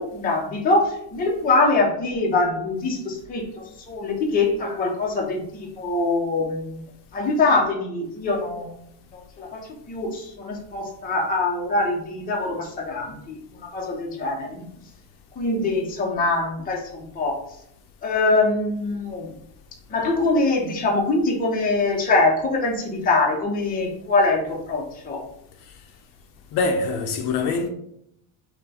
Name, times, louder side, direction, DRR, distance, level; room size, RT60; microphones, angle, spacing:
voice 1, 0.0-6.8 7.1-8.7 9.1-14.6 15.4-17.4 18.0-19.3 19.9-25.2, left 3 dB, 20° left, 0.6 m, -23 dB
voice 2, 26.5-27.7, left 3 dB, 60° left, 0.8 m, -24 dB
5.4 x 2.2 x 4.1 m
cardioid pair, 160°, 46 cm